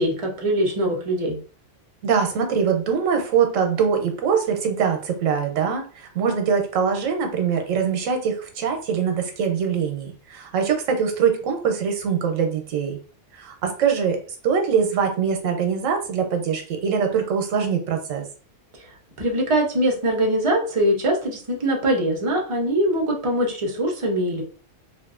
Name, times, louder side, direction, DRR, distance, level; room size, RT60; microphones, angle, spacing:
voice 1, 0.0-1.4 19.2-24.4, right 1 dB, 35° right, 0 dB, 0.6 m, -22 dB
voice 2, 2.0-13.0 13.3-18.2, right 6 dB, 90° right, 4 dB, 1.0 m, -23 dB
2.6 x 2.5 x 2.4 m, 0.39 s
omnidirectional pair, 1.3 m